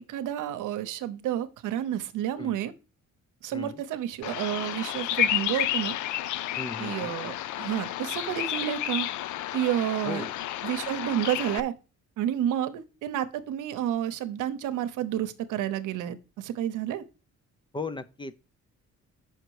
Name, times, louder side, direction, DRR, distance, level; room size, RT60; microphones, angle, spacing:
voice 1, 0.1-2.7 3.4-6.0 6.8-9.1 9.5-10.3 10.6-11.7 12.2-17.0, right 11 dB, 85° right, 0.9 m, -30 dB
Bird vocalization bird call bird song, 4.2-11.6, left 12 dB, 75° left, 0.5 m, -31 dB
voice 2, 6.6-7.1 10.0-10.3 17.7-18.3, left 3 dB, 15° left, 0.6 m, -36 dB
6.6 x 5.9 x 4.8 m
cardioid pair, 90°, 30 cm